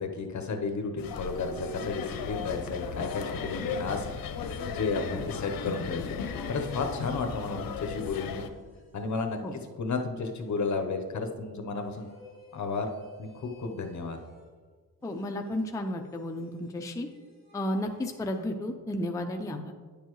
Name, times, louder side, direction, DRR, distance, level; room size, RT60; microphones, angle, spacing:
voice 1, 0.0-6.0 6.5-8.4 8.9-12.1 12.5-12.9 13.2-14.2, left 4 dB, 55° left, 4 dB, 0.9 m, -33 dB
sound 1, 1.0-8.5, left 6 dB, 80° left, 0.7 m, -36 dB
sound 2, 1.1-2.8 4.0-7.1 7.5-9.9 10.4-11.1 11.8-14.6 15.0-18.5, right 4 dB, 65° right, 2.6 m, -52 dB
voice 2, 15.0-17.1 17.5-19.7, left 1 dB, 10° left, 4 dB, 0.5 m, -33 dB
9.9 x 6.8 x 3.1 m, 1.5 s
wide cardioid pair, 120°, 35 cm